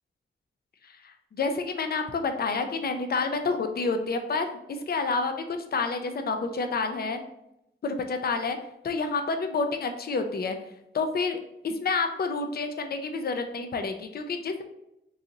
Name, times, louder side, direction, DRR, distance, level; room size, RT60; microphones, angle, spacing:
voice 1, 0.9-7.2 7.8-8.6 8.8-10.6 10.9-11.4 11.6-14.6, left 4 dB, 50° left, 6 dB, 0.5 m, -29 dB
3.9 x 2.6 x 2.8 m, 0.83 s
cardioid pair, 75°, 20 cm